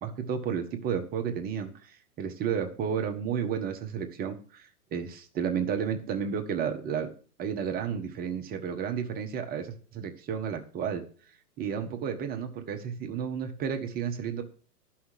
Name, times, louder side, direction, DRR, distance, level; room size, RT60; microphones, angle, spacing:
voice 1, 0.0-7.1 7.4-11.0 11.6-14.4, right 7 dB, 20° right, 5 dB, 0.9 m, -32 dB
12.5 x 5.8 x 6.4 m, 0.42 s
hypercardioid pair, 140°, 47 cm